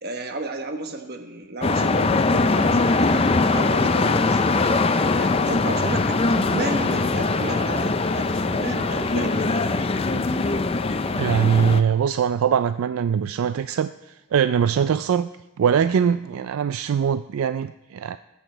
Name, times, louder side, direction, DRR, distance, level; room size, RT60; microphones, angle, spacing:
voice 1, 0.0-9.6, right 2 dB, 45° right, 6 dB, 1.2 m, -33 dB
sound 1, 1.6-11.8, left 3 dB, 25° left, 0.5 m, -21 dB
voice 2, 11.1-15.3 15.6-18.2, right 7 dB, 70° right, 13 dB, 0.3 m, -22 dB
19.5 x 8.2 x 4.4 m, 1.0 s
head